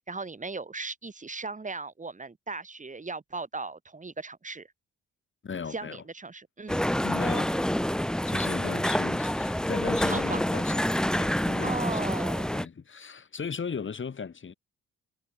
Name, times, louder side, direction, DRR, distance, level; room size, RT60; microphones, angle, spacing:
voice 1, 0.0-4.7 5.7-6.9 10.0-10.4 11.6-12.5, right 3 dB, 25° right, 6.2 m, -37 dB
voice 2, 5.4-6.0 7.0-7.7 8.3-12.1 12.5-14.5, left 6 dB, 40° left, 6.5 m, -37 dB
sound 1, 6.7-12.7, equal, ahead, 0.9 m, -27 dB
cardioid pair, 90°, 30 cm